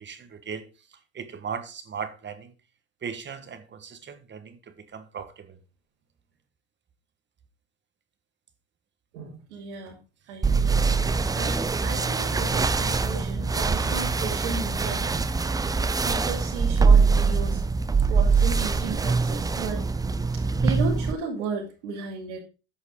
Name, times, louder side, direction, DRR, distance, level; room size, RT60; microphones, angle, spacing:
voice 1, 0.0-2.5 3.0-5.6 11.1-11.2, right 6 dB, 30° right, 1.6 m, -38 dB
voice 2, 9.1-10.0 10.3-17.6 18.1-19.9 20.3-22.4, right 4 dB, 90° right, 3.0 m, -35 dB
sound 1, 10.4-21.1, right 4 dB, 10° right, 0.5 m, -23 dB
8.8 x 6.3 x 4.7 m
supercardioid pair, 95°, 34 cm